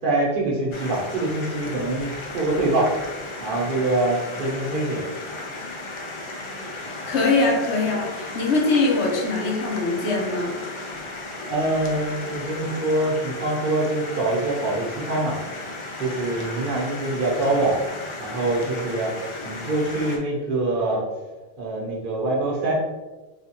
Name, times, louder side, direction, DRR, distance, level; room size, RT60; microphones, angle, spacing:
voice 1, 0.0-2.9 3.4-5.0 11.5-15.4 16.0-17.8 18.2-21.0 21.6-22.7, right 2 dB, 55° right, -4 dB, 0.9 m, -24 dB
sound 1, 0.7-20.2, left 2 dB, 50° left, 0.3 m, -35 dB
voice 2, 6.8-10.6, left 3 dB, 90° left, -1 dB, 1.0 m, -22 dB
3.3 x 2.3 x 2.8 m, 1.2 s
omnidirectional pair, 1.1 m